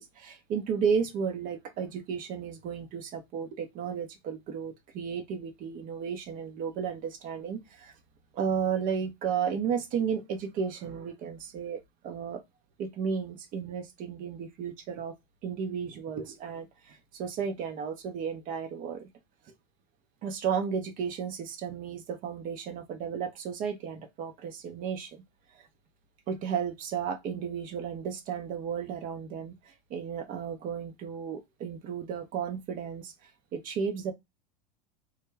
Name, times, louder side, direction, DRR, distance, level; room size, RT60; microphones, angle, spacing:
voice 1, 0.0-7.9 8.3-12.4 12.8-15.1 15.4-19.1 20.2-25.2 25.5-25.7 26.3-34.1, right 7 dB, 40° right, 0.7 m, -33 dB
2.3 x 2.2 x 3.2 m
hypercardioid pair, 85°, 21 cm